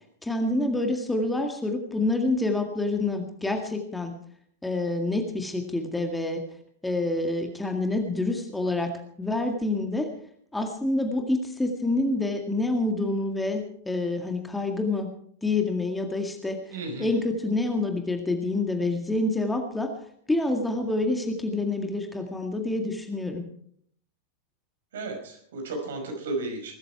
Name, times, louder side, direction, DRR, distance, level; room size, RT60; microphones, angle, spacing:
voice 1, 0.2-4.1 4.6-6.4 6.8-8.9 9.2-10.1 10.5-15.1 15.4-19.9 20.3-23.5, left 2 dB, 5° left, 4 dB, 2.0 m, -27 dB
voice 2, 16.7-17.2 24.9-26.7, right 2 dB, 60° right, 3 dB, 5.3 m, -33 dB
21.0 x 13.0 x 4.7 m, 0.64 s
figure-of-eight pair, 90°, 0 cm